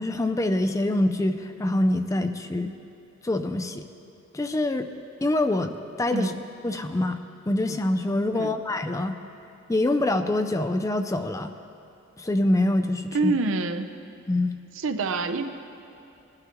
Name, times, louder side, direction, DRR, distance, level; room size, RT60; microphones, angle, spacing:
voice 1, 0.0-2.7 3.2-3.8 4.3-4.9 5.2-6.3 6.6-7.2 7.5-9.2 9.7-11.5 12.2-13.3 14.3-14.6, left 1 dB, 15° left, 8 dB, 0.4 m, -25 dB
voice 2, 13.1-13.9 14.8-15.5, right 3 dB, 70° right, 8 dB, 0.6 m, -26 dB
19.5 x 11.5 x 3.0 m, 2.9 s
head